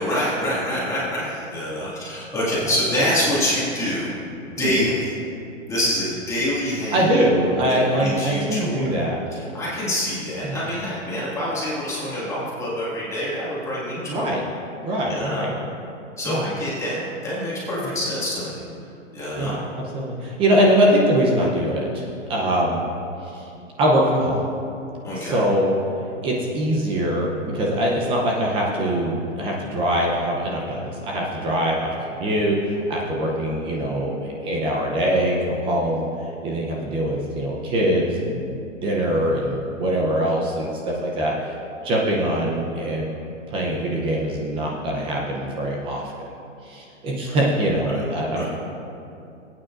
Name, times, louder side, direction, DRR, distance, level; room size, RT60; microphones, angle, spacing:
voice 1, 0.0-4.1 4.5-5.1 5.7-7.1 7.7-8.9 9.3-14.3 15.1-15.5 16.2-18.6 19.1-19.6 25.0-25.4 47.3-47.4 47.9-48.0 48.3-48.5, left 1 dB, 10° left, -8 dB, 2.0 m, -26 dB
voice 2, 4.6-4.9 6.9-9.2 10.4-10.6 14.1-14.4 14.8-15.5 16.3-16.4 17.8-17.9 19.3-22.8 23.2-23.5 23.8-24.4 25.2-25.7 26.2-31.9 32.2-38.6 38.8-41.3 41.8-43.1 43.5-46.0 46.6-48.5, right 1 dB, 15° right, -2 dB, 0.7 m, -23 dB
18.5 x 8.8 x 2.5 m, 2.7 s
hypercardioid pair, 155°, 38 cm